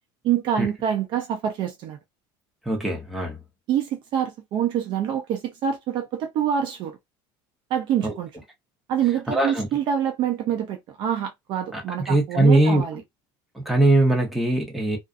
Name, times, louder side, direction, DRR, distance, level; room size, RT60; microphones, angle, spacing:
voice 1, 0.2-2.0 3.7-7.0 7.7-8.3 8.9-13.0, right 9 dB, 45° right, 0.5 m, -26 dB
voice 2, 2.7-3.4 8.0-8.1 9.3-9.7 11.7-13.0 13.5-15.0, right 2 dB, ahead, 0.9 m, -21 dB
2.4 x 2.4 x 2.4 m
cardioid pair, 145°, 11 cm